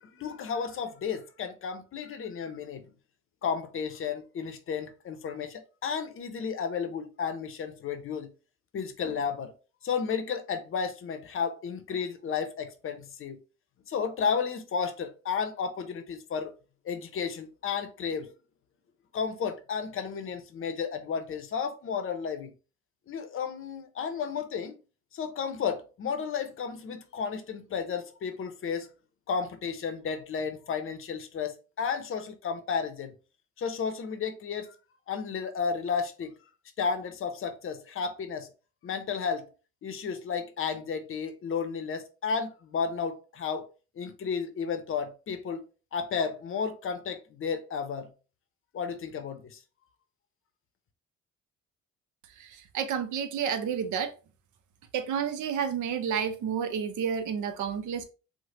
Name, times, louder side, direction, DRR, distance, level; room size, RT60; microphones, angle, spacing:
voice 1, 0.0-2.8 3.4-8.3 8.7-9.5 9.8-13.4 13.9-16.5 16.8-18.3 19.1-22.5 23.1-24.7 25.1-28.9 29.3-33.1 33.6-34.7 35.1-36.3 36.8-38.5 38.8-39.5 39.8-43.7 44.0-45.6 45.9-48.1 48.7-49.6, left 6 dB, 45° left, 0.6 m, -33 dB
voice 2, 52.7-54.1 54.9-58.0, right 7 dB, 75° right, 0.6 m, -30 dB
3.2 x 2.1 x 2.8 m
cardioid pair, 90°, 30 cm